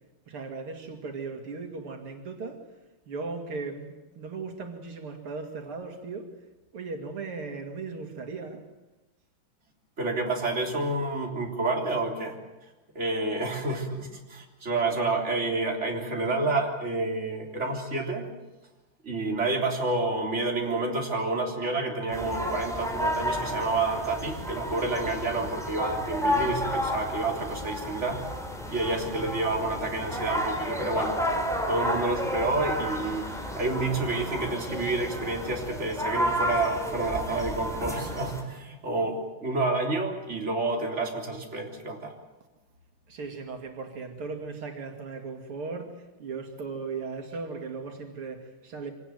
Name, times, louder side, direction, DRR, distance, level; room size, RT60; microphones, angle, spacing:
voice 1, 0.3-2.6 3.1-6.3 6.7-8.6 43.1-48.9, right 4 dB, 90° right, 3.4 m, -37 dB
voice 2, 10.0-12.4 13.0-18.2 19.0-28.2 28.7-31.2 31.7-33.3 33.5-42.1, right 2 dB, 30° right, 3.9 m, -29 dB
sound 1, 22.1-38.4, equal, ahead, 3.7 m, -31 dB
25.5 x 19.0 x 9.4 m
omnidirectional pair, 2.4 m